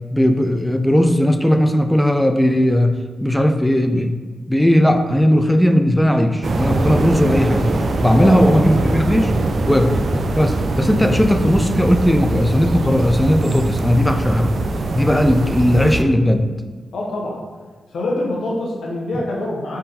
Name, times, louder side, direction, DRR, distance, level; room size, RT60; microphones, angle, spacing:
voice 1, 0.1-4.2 4.5-7.6 8.0-9.3 9.7-10.0 10.3-14.5 14.9-16.4, equal, 5° left, 7 dB, 0.4 m, -17 dB
sound 1, 6.4-16.0, right 2 dB, 60° right, 0.4 m, -22 dB
voice 2, 8.2-8.8 16.9-17.4 17.9-19.8, left 1 dB, 80° left, -2 dB, 0.9 m, -25 dB
3.8 x 2.6 x 4.1 m, 1.4 s
supercardioid pair, 45°, 0 cm